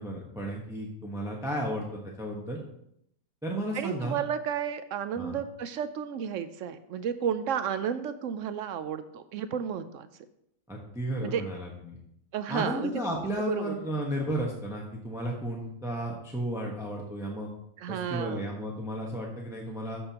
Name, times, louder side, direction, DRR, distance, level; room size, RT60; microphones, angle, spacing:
voice 1, 0.0-2.6 3.4-4.2 5.2-5.4 10.7-12.0 12.5-17.5 17.9-20.0, right 1 dB, ahead, -1 dB, 1.0 m, -33 dB
voice 2, 3.7-10.1 11.2-11.4 12.3-12.9 13.4-13.7 17.8-18.5, right 8 dB, 70° right, 11 dB, 0.8 m, -32 dB
13.5 x 5.5 x 2.9 m, 0.75 s
omnidirectional pair, 1.5 m